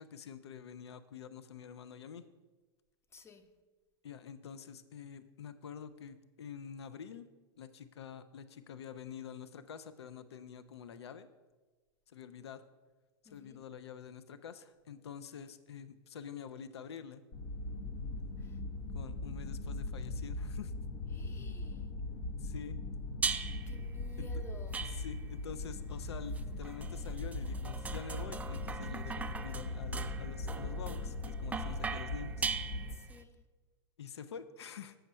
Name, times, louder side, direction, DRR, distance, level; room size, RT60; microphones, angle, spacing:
voice 1, 0.0-2.2 4.0-7.3 7.6-11.3 12.1-12.6 13.2-17.2 18.9-20.7 22.4-22.8 24.2-24.3 25.0-32.5 34.0-35.0, left 7 dB, 75° left, 0.5 m, -47 dB
voice 2, 3.1-3.6 13.2-13.7 18.4-18.6 21.1-21.9 23.7-25.0 32.9-33.4, left 4 dB, 20° left, 0.8 m, -55 dB
sound 1, 17.3-32.9, left 2 dB, 45° left, 0.9 m, -40 dB
sound 2, 23.2-23.8 24.7-25.4 26.4-33.2, right 5 dB, 10° right, 0.3 m, -40 dB
7.8 x 6.3 x 5.4 m
hypercardioid pair, 95°, 14 cm